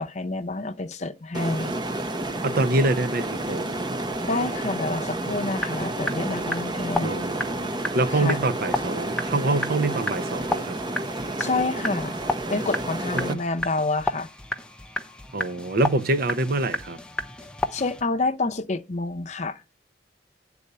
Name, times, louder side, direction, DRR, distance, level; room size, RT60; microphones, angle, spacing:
voice 1, 0.0-1.7 4.3-7.2 8.1-8.4 11.4-12.2 12.5-14.3 17.7-19.6, left 3 dB, 40° left, 0.7 m, -28 dB
sound 1, 1.3-13.3, right 2 dB, 25° right, 0.8 m, -30 dB
voice 2, 2.4-3.8 7.0-10.8 13.2-13.5 15.3-17.0, right 2 dB, 55° right, 0.6 m, -25 dB
sound 2, 5.2-18.0, left 1 dB, 5° left, 0.7 m, -33 dB
9.5 x 4.1 x 6.7 m
head